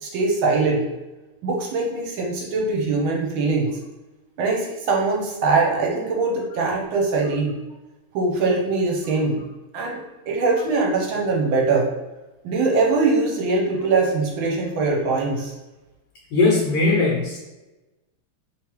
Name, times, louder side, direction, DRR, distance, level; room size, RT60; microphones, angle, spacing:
voice 1, 0.0-0.9 1.4-3.7 4.4-7.6 8.1-9.4 9.7-10.0 10.3-11.9 12.4-15.5, right 3 dB, 70° right, -1 dB, 1.4 m, -22 dB
voice 2, 16.3-17.4, left 3 dB, 70° left, -3 dB, 1.4 m, -19 dB
3.4 x 3.1 x 3.1 m, 1.1 s
omnidirectional pair, 2.4 m